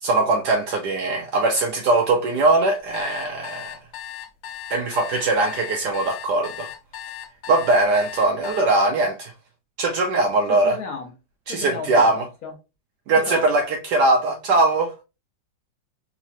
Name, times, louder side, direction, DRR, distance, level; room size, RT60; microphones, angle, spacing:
voice 1, 0.0-3.8 4.7-6.7 7.5-9.3 9.8-10.8 11.5-12.3 13.1-14.9, right 2 dB, 70° right, 1.0 m, -21 dB
sound 1, 2.7-8.6, left 10 dB, 80° left, 1.4 m, -37 dB
voice 2, 10.5-11.1 11.5-12.5 13.1-13.5, left 4 dB, 60° left, 1.0 m, -33 dB
3.7 x 3.0 x 2.6 m
omnidirectional pair, 2.2 m